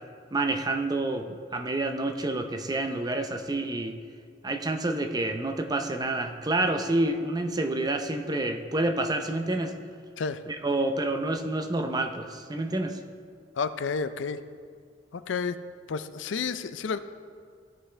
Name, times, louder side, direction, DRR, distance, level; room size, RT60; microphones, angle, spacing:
voice 1, 0.3-4.0 4.4-9.7 10.5-13.0, right 2 dB, 20° right, 5 dB, 0.6 m, -28 dB
voice 2, 13.6-14.4 15.1-15.6 15.9-17.0, left 5 dB, 80° left, 12 dB, 0.4 m, -30 dB
16.0 x 5.6 x 3.3 m, 2.1 s
head